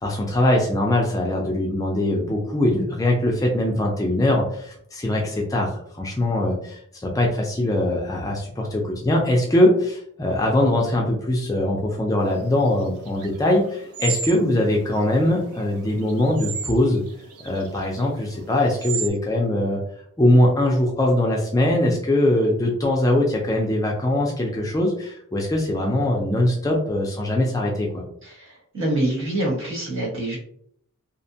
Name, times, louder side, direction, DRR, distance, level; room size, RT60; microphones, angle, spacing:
voice 1, 0.0-5.7 6.0-17.0 17.4-19.8 20.2-28.0, left 1 dB, 15° left, -1 dB, 0.3 m, -21 dB
sound 1, 12.3-19.1, right 6 dB, 75° right, 0.4 m, -35 dB
voice 2, 28.2-30.4, right 1 dB, 55° right, -3 dB, 1.1 m, -26 dB
2.7 x 2.1 x 2.6 m, 0.66 s
head